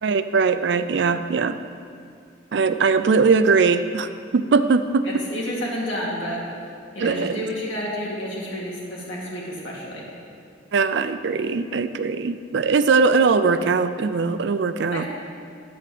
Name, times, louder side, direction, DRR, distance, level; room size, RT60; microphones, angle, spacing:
voice 1, 0.0-1.6 2.5-5.1 7.0-7.4 10.7-15.0, right 4 dB, 60° right, 11 dB, 0.4 m, -20 dB
voice 2, 5.0-6.4 6.9-10.0 14.9-15.1, equal, 80° left, -4 dB, 2.5 m, -30 dB
10.5 x 5.0 x 7.6 m, 2.3 s
head